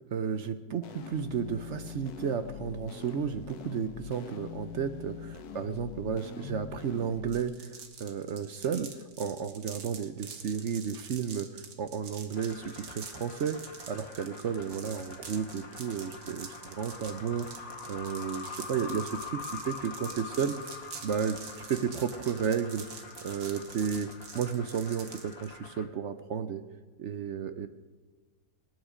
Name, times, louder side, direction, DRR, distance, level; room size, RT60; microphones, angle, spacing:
voice 1, 0.1-7.7 8.0-8.9 9.2-13.6 13.9-20.6 21.0-22.9 23.2-24.1 24.3-26.6 27.0-27.7, right 7 dB, 60° right, 11 dB, 0.9 m, -33 dB
sound 1, 0.8-7.4, left 7 dB, 85° left, 1.4 m, -43 dB
sound 2, 7.3-25.5, right 6 dB, 80° right, 1.8 m, -46 dB
sound 3, 12.3-25.9, left 5 dB, 45° left, 1.8 m, -45 dB
25.5 x 9.5 x 5.0 m, 1.3 s
omnidirectional pair, 1.6 m